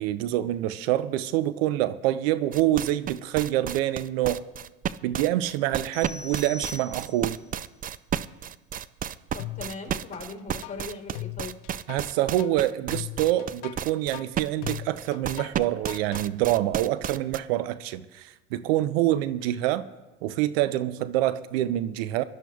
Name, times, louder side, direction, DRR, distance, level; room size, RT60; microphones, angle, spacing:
voice 1, 0.0-4.5 5.0-7.4 11.9-19.8 20.2-22.2, right 14 dB, 80° right, 0.5 m, -26 dB
sound 1, 2.5-17.4, right 9 dB, 30° right, 0.4 m, -32 dB
sound 2, 5.9-7.4, left 3 dB, 10° left, 3.2 m, -41 dB
voice 2, 9.3-11.6, left 3 dB, 25° left, 3.0 m, -39 dB
sound 3, 9.4-10.2 10.6-16.2, left 18 dB, 70° left, 0.7 m, -38 dB
25.0 x 12.0 x 2.3 m
hypercardioid pair, 80°, 30 cm